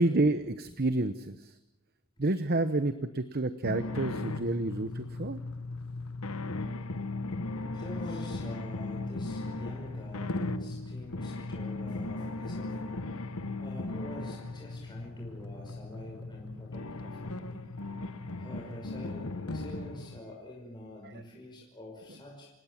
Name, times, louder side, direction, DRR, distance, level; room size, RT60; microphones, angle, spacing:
voice 1, 0.0-1.5 2.2-5.4, right 2 dB, 45° right, 11 dB, 0.9 m, -29 dB
sound 1, 3.6-20.2, left 2 dB, 85° left, 1.3 m, -37 dB
voice 2, 7.5-12.9 13.6-17.6 18.1-22.5, left 1 dB, 20° left, -2 dB, 5.4 m, -46 dB
28.5 x 18.0 x 7.5 m, 0.86 s
head